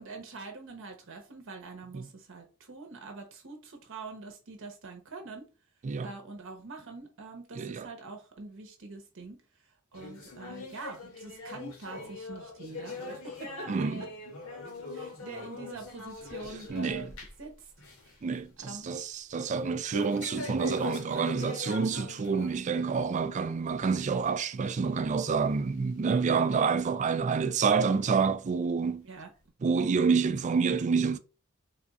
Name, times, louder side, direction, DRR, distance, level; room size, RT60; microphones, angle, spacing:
voice 1, 0.0-5.5 6.0-13.9 14.9-17.1 17.4-17.7 18.0-18.1 18.6-18.9 29.0-29.3, right 3 dB, 65° right, 0.9 m, -45 dB
voice 2, 7.5-7.9 13.7-14.0 16.7-17.1 18.2-29.1 29.6-31.2, right 5 dB, 35° right, 0.3 m, -28 dB
sound 1, 9.9-17.5 17.8-18.1 18.5-18.6 19.9-22.6 23.0-23.2 23.9-24.0 24.8-24.9 25.7-25.8, left 2 dB, 75° left, 1.2 m, -41 dB
3.6 x 2.4 x 4.0 m
head